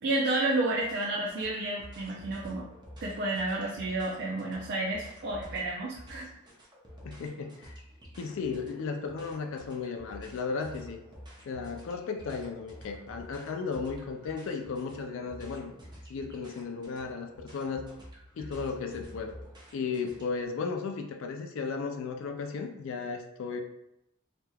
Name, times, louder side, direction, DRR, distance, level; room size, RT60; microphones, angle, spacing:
voice 1, 0.0-2.6 3.0-6.3, right 2 dB, 55° right, -3 dB, 0.5 m, -31 dB
sound 1, 0.8-20.4, equal, 20° right, 0.7 m, -49 dB
voice 2, 7.0-7.8 8.2-11.0 11.5-15.7 16.1-17.9 18.4-19.4 19.7-23.6, left 5 dB, 65° left, 4 dB, 0.4 m, -35 dB
3.3 x 2.9 x 2.2 m, 0.83 s
head